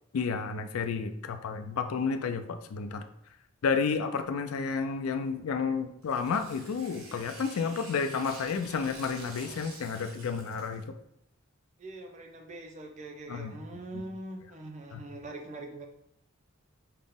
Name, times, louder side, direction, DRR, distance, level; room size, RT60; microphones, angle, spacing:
voice 1, 0.1-3.0 3.6-10.8 13.3-13.5 13.9-14.0 14.9-15.0, left 5 dB, 85° left, 7 dB, 0.4 m, -31 dB
Tearing, 6.0-10.8, right 3 dB, 85° right, 1.1 m, -48 dB
voice 2, 11.8-15.9, right 2 dB, 35° right, 3 dB, 0.6 m, -43 dB
5.7 x 2.0 x 3.5 m, 0.76 s
head